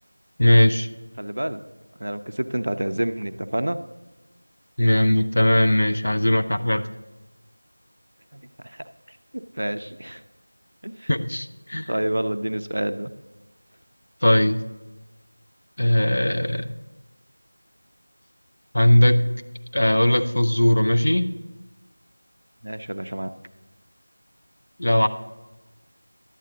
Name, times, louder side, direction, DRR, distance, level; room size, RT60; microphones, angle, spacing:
voice 1, 0.4-0.9 4.8-6.8 11.1-11.9 14.2-14.6 15.8-16.8 18.7-19.2 19.7-21.3 24.8-25.1, left 1 dB, 45° left, 8 dB, 0.6 m, -19 dB
voice 2, 1.2-1.6 2.0-3.8 8.3-10.2 10.8-11.1 11.7-13.1 22.6-23.3, right 1 dB, 50° right, 10 dB, 0.5 m, -29 dB
11.5 x 8.3 x 3.9 m, 1.1 s
figure-of-eight pair, 175°, 0 cm